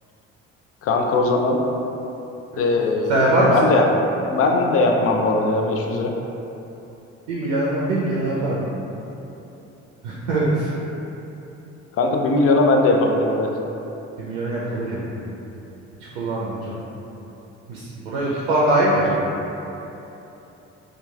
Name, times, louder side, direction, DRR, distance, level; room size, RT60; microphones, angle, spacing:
voice 1, 0.8-1.6 2.6-3.9 4.3-6.1 12.0-13.5, left 2 dB, 40° left, 1 dB, 0.4 m, -19 dB
voice 2, 3.1-3.6 7.3-8.6 10.0-10.7 14.2-15.1 16.1-16.8 17.7-19.3, right 1 dB, 80° right, -7 dB, 0.5 m, -22 dB
2.9 x 2.3 x 2.3 m, 3.0 s
hypercardioid pair, 50°, 35 cm